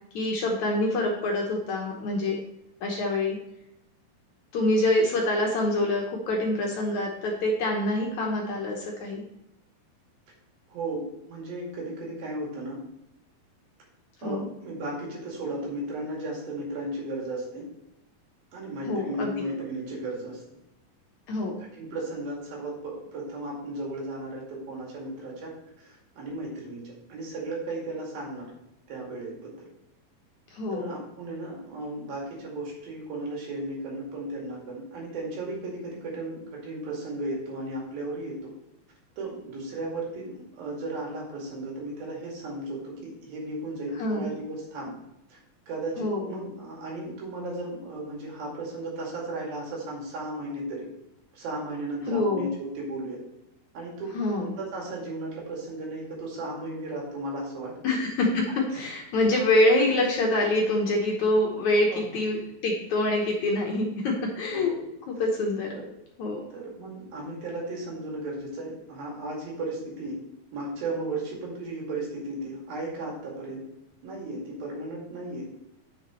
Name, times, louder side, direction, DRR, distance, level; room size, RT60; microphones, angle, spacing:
voice 1, 0.1-2.4 2.8-3.4 4.5-9.2 14.2-14.5 18.9-19.3 21.3-21.6 30.5-31.0 44.0-44.3 46.0-46.4 52.1-52.5 54.1-54.5 57.8-58.5 58.7-64.7 65.1-65.8 66.2-66.4, left 1 dB, 65° left, -1 dB, 2.1 m, -25 dB
voice 2, 10.7-12.8 14.2-17.7 18.5-20.4 21.6-28.5 28.9-29.7 30.7-38.5 39.2-45.0 45.3-45.4 45.7-50.9 51.3-53.2 53.7-54.1 54.4-57.7 58.5-58.8 59.8-59.9 61.9-62.0 64.5-64.8 65.7-65.8 66.5-70.2 70.5-73.6 74.0-75.5, right 2 dB, 70° right, -2 dB, 4.1 m, -35 dB
9.7 x 7.0 x 3.1 m, 0.87 s
omnidirectional pair, 4.3 m